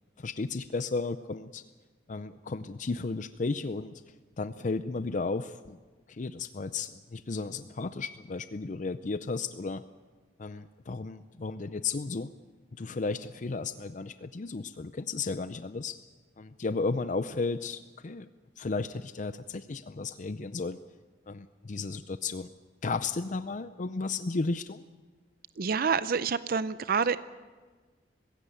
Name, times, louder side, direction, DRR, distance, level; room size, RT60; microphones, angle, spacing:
voice 1, 0.0-1.6 2.1-4.0 4.4-5.8 6.1-9.8 10.4-12.3 12.7-16.0 16.4-18.3 18.6-20.8 21.3-22.5 22.8-24.8, left 3 dB, 45° left, 12 dB, 0.6 m, -34 dB
voice 2, 25.6-27.2, right 5 dB, 55° right, 14 dB, 0.5 m, -27 dB
20.0 x 16.5 x 9.3 m, 1.4 s
head